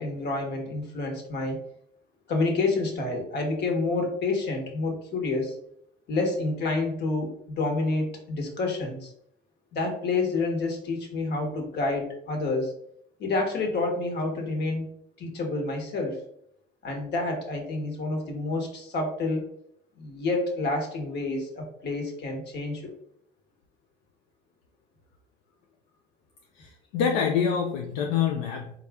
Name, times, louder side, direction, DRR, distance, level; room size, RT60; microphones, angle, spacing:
voice 1, 0.0-1.6 2.3-5.5 6.1-9.1 9.7-12.7 13.2-16.2 16.8-19.5 20.0-22.9, left 3 dB, 60° left, 2 dB, 1.2 m, -28 dB
voice 2, 26.6-28.7, left 7 dB, 85° left, 2 dB, 0.5 m, -26 dB
4.1 x 2.4 x 3.4 m, 0.70 s
supercardioid pair, 80°, 20 cm